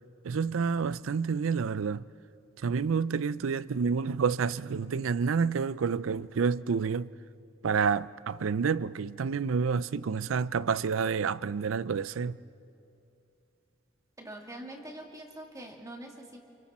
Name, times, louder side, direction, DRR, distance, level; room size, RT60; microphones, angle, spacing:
voice 1, 0.2-2.0 2.6-7.1 7.6-12.4, right 5 dB, 85° right, 0.5 m, -29 dB
voice 2, 14.2-16.4, right 1 dB, 15° right, 2.2 m, -44 dB
29.0 x 28.0 x 4.3 m
head